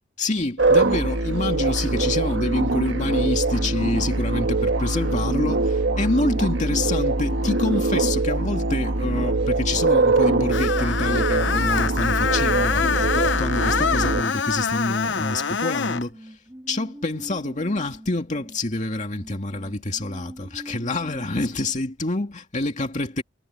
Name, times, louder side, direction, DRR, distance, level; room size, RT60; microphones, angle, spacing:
voice 1, 0.2-16.4 16.7-23.2, left 2 dB, 40° left, 2.3 m, -27 dB
sound 1, 0.6-14.2, right 2 dB, 75° right, 1.6 m, -23 dB
sound 2, 5.8-21.3, equal, 15° right, 2.1 m, -43 dB
Screech, 10.5-16.0, left 6 dB, 70° left, 0.8 m, -25 dB
head